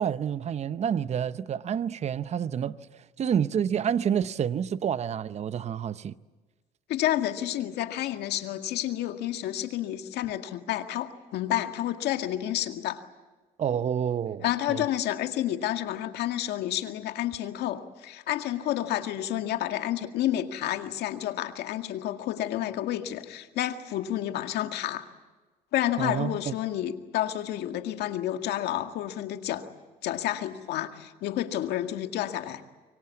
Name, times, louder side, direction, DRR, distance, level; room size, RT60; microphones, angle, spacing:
voice 1, 0.0-2.8 3.2-6.1 13.6-14.8 26.0-26.5, right 8 dB, 40° right, 0.8 m, -28 dB
voice 2, 6.9-13.0 14.4-25.0 25.7-29.6 30.0-32.6, left 12 dB, 80° left, 2.0 m, -30 dB
25.5 x 23.5 x 8.4 m
cardioid pair, 110°, 17 cm